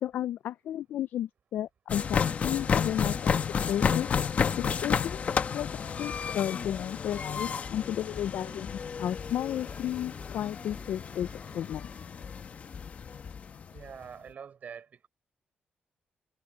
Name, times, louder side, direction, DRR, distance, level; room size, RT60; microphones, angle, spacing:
voice 1, 0.0-4.1 4.6-5.2 5.5-11.9, left 11 dB, 80° left, 0.4 m, -33 dB
sound 1, 1.9-13.9, left 6 dB, 45° left, 1.1 m, -31 dB
sound 2, 7.8-12.3, equal, 5° right, 6.2 m, -56 dB
voice 2, 13.7-15.1, right 7 dB, 55° right, 4.9 m, -45 dB
cardioid pair, 125°, 3 cm